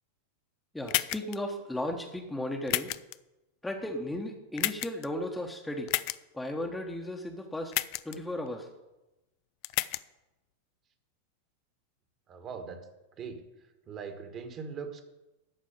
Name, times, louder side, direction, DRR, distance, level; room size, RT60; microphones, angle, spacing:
voice 1, 0.7-2.9 3.6-5.9 6.3-7.7 8.0-8.7, left 1 dB, 5° left, 2 dB, 1.1 m, -35 dB
sound 1, 0.9-1.4 2.7-3.2 4.6-5.1 5.9-6.2 7.7-8.2 9.6-10.0, left 19 dB, 45° left, 0.4 m, -30 dB
voice 2, 12.3-12.9 13.2-13.4 13.9-15.0, right 5 dB, 30° right, 6 dB, 1.7 m, -40 dB
14.0 x 4.8 x 8.8 m, 1.0 s
figure-of-eight pair, 90°, 0 cm